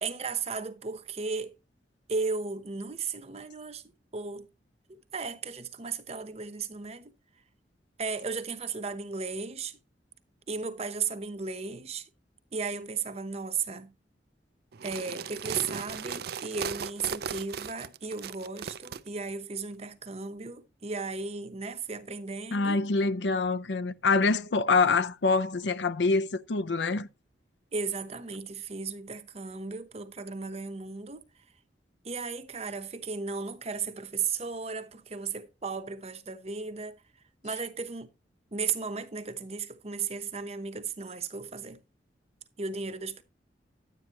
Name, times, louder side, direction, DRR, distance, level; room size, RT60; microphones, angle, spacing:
voice 1, 0.0-1.5 2.1-3.8 4.1-4.5 5.1-7.1 8.0-9.8 10.5-12.0 12.5-13.9 14.8-22.8 27.7-31.2 32.0-37.0 37.4-38.1 38.5-41.8 42.6-43.2, right 5 dB, 35° right, 0.9 m, -35 dB
sound 1, 14.7-19.0, right 6 dB, 60° right, 0.5 m, -37 dB
voice 2, 22.5-27.1, left 4 dB, 80° left, 0.6 m, -25 dB
10.5 x 9.2 x 2.9 m
head